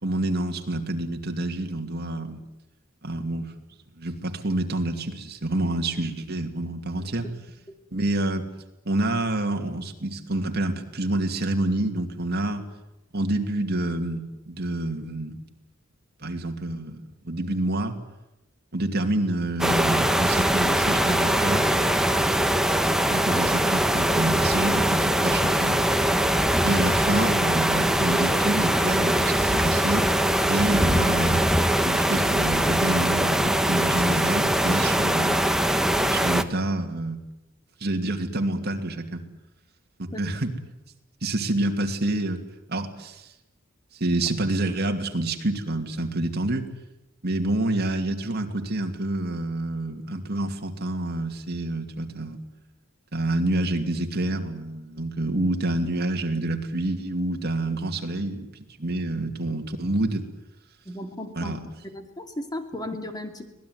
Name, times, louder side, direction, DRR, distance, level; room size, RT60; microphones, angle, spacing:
voice 1, 0.0-2.4 3.0-3.5 4.0-7.3 7.9-8.5 8.8-12.7 13.1-15.4 16.2-18.0 18.7-21.7 23.1-25.8 26.6-30.1 30.5-31.5 31.8-35.4 36.1-37.2 37.8-39.2 40.0-40.5 41.2-42.4 42.7-43.3 43.9-46.7 47.2-52.4 53.1-58.5 58.8-60.2 61.4-61.6, right 1 dB, 50° right, 4 dB, 2.6 m, -28 dB
sound 1, 19.6-36.4, right 1 dB, ahead, 1.1 m, -22 dB
voice 2, 60.8-61.6 61.8-63.5, left 1 dB, 20° left, 5 dB, 2.6 m, -36 dB
25.0 x 19.0 x 9.5 m, 0.93 s
head